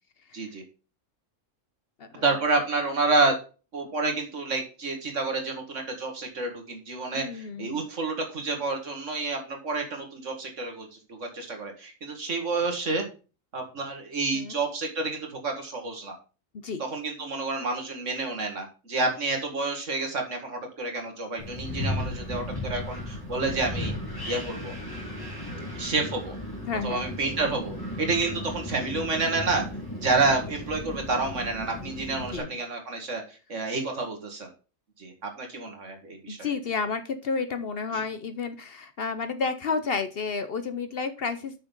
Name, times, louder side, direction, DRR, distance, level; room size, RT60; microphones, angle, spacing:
voice 1, 0.3-0.6 2.2-3.3 3.7-13.0 13.5-16.2 16.9-23.9 24.3-24.7 25.7-26.3 26.8-29.6 30.0-33.2 33.5-34.5 35.0-36.5, right 3 dB, 70° right, 4 dB, 2.2 m, -29 dB
voice 2, 7.1-7.8 14.3-14.6 16.6-16.8 26.7-27.1 32.3-32.6 36.3-41.5, left 5 dB, 55° left, 10 dB, 0.9 m, -31 dB
Wind, 21.4-32.4, left 1 dB, 15° left, 2.2 m, -35 dB
6.4 x 6.1 x 5.3 m, 0.34 s
omnidirectional pair, 1.3 m